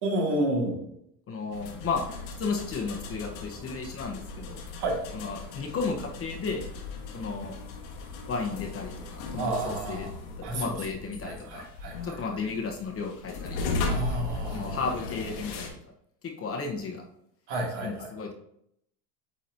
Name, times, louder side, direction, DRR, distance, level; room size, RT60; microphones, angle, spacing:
voice 1, 0.0-0.9 4.8-5.0 9.4-10.1 10.4-10.8 11.2-12.2 13.9-14.8 17.5-18.1, right 1 dB, 70° right, -2 dB, 2.6 m, -30 dB
voice 2, 1.3-2.0 2.4-4.6 5.1-6.7 7.1-7.5 8.3-10.1 10.4-11.6 12.0-13.6 14.5-15.7 16.2-17.0 17.8-18.3, left 4 dB, 30° left, 2 dB, 1.0 m, -33 dB
sound 1, 1.5-15.7, left 3 dB, 85° left, 1.6 m, -37 dB
8.7 x 4.1 x 2.7 m, 0.73 s
supercardioid pair, 115°, 49 cm